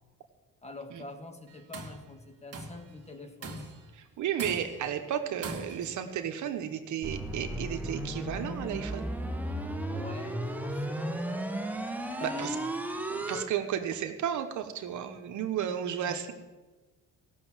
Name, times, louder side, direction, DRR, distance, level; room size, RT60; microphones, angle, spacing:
voice 1, 0.6-3.7 9.9-11.7 12.2-13.0 13.3-13.4 16.1-16.2, left 2 dB, 20° left, 5 dB, 1.8 m, -45 dB
Tools, 1.5-2.0 2.5-2.9 3.4-3.9 4.4-4.9 5.4-6.0, right 3 dB, 55° right, 2.1 m, -41 dB
voice 2, 4.2-9.1 12.2-12.6 13.1-16.3, right 9 dB, 75° right, 7 dB, 1.2 m, -33 dB
sound 1, 7.0-13.4, right 1 dB, 5° right, 1.2 m, -34 dB
16.0 x 6.5 x 7.4 m, 1.2 s
cardioid pair, 90°, 30 cm